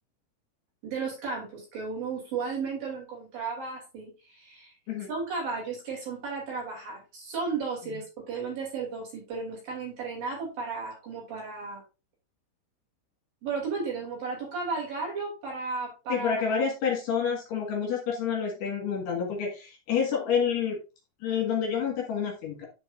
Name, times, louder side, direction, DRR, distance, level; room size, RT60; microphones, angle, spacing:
voice 1, 0.8-4.8 5.1-11.8 13.4-16.3, right 4 dB, 50° right, -3 dB, 4.4 m, -34 dB
voice 2, 16.1-20.8 21.2-22.7, left 7 dB, 65° left, 0 dB, 3.5 m, -28 dB
10.5 x 5.2 x 2.6 m, 0.29 s
omnidirectional pair, 5.7 m